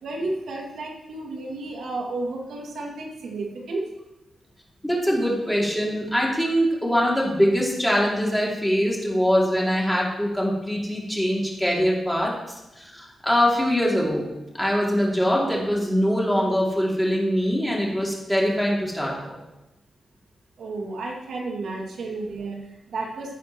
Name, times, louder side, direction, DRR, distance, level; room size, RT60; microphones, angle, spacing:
voice 1, 0.0-3.9 20.6-23.3, right 2 dB, 85° right, -1 dB, 2.3 m, -32 dB
voice 2, 4.8-12.3 12.8-14.3 14.5-19.4, equal, ahead, -4 dB, 2.6 m, -23 dB
14.5 x 10.0 x 3.1 m, 0.99 s
wide cardioid pair, 135°, 0 cm